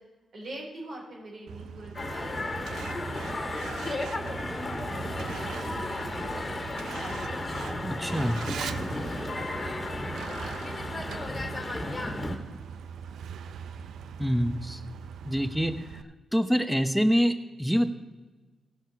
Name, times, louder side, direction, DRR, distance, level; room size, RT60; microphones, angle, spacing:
voice 1, 0.3-3.7 4.2-4.8 5.1-7.9 8.5-11.8, right 1 dB, 65° right, -1 dB, 4.6 m, -46 dB
Truck, 1.5-16.0, right 7 dB, 80° right, 0.5 m, -41 dB
sound 1, 1.9-12.3, left 2 dB, 30° left, 2.0 m, -34 dB
voice 2, 7.8-8.4 14.2-14.8 15.2-15.7 16.3-17.9, equal, ahead, 9 dB, 1.0 m, -25 dB
16.5 x 6.5 x 4.7 m, 1.3 s
supercardioid pair, 50°, 0 cm